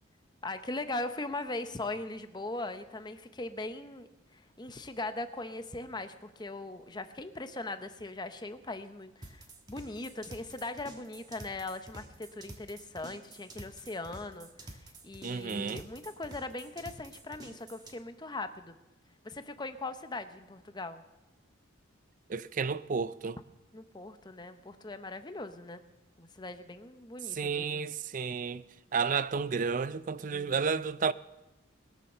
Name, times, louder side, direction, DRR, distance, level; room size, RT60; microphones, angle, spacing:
voice 1, 0.4-18.8 19.2-21.0 23.7-25.8 26.2-27.8 30.3-30.6, left 2 dB, 20° left, 0.7 m, -40 dB
sound 1, 9.2-17.9, right 1 dB, 20° right, 1.3 m, -49 dB
voice 2, 15.2-15.8 22.3-23.4 27.3-28.6 28.9-31.1, right 5 dB, 40° right, 0.4 m, -31 dB
21.0 x 7.0 x 6.7 m
head